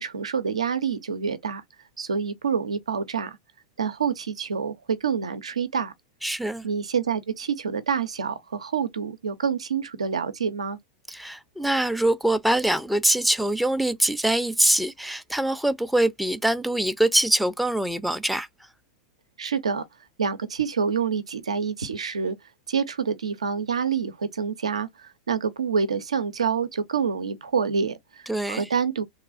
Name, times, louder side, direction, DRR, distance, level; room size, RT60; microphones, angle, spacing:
voice 1, 0.0-1.6 2.0-3.4 3.8-5.9 6.6-10.8 19.4-19.9 20.2-22.4 22.7-29.0, right 6 dB, 90° right, 0.5 m, -27 dB
voice 2, 6.2-6.7 11.1-18.5 28.3-28.7, right 1 dB, ahead, 0.4 m, -23 dB
3.2 x 2.3 x 2.4 m
hypercardioid pair, 100°, 3 cm